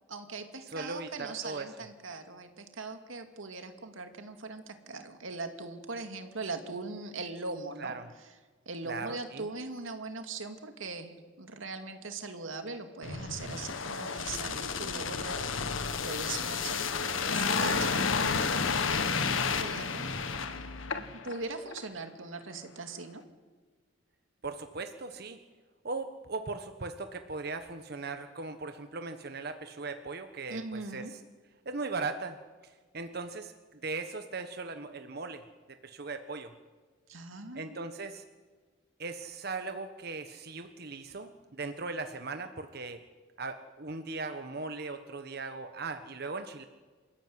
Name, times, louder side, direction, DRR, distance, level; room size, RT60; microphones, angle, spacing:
voice 1, 0.1-8.3 8.7-18.0 18.6-20.2 20.9-23.2 30.5-31.1 37.1-37.8, right 3 dB, 90° right, 6 dB, 2.4 m, -41 dB
voice 2, 0.7-1.7 7.8-8.0 8.8-9.4 17.5-18.1 24.4-25.4 25.8-31.2 31.6-32.4 32.6-35.4 35.8-36.5 37.5-38.2 39.0-43.0 43.4-46.6, right 3 dB, 55° right, 7 dB, 1.3 m, -38 dB
sound 1, 13.0-21.4 21.7-21.9, left 5 dB, 90° left, 1.7 m, -31 dB
27.5 x 14.5 x 9.6 m, 1.4 s
head